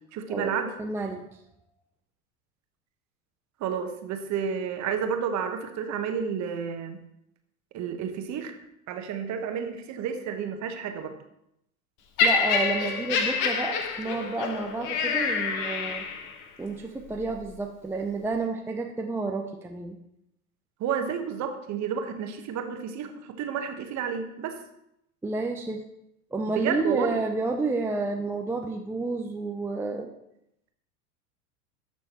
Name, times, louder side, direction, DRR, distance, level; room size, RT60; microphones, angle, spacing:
voice 1, 0.1-0.8 3.6-7.0 7.7-8.6 8.9-11.2 20.8-24.6 26.5-27.2, right 7 dB, 40° right, 6 dB, 1.2 m, -31 dB
voice 2, 0.8-1.3 12.2-16.1 16.6-20.0 25.2-25.8 26.3-30.1, right 3 dB, 5° right, 2 dB, 0.5 m, -30 dB
Laughter, 12.2-16.4 17.2-17.4, left 5 dB, 45° left, 1.2 m, -27 dB
11.5 x 6.1 x 3.0 m, 0.79 s
hypercardioid pair, 85°, 44 cm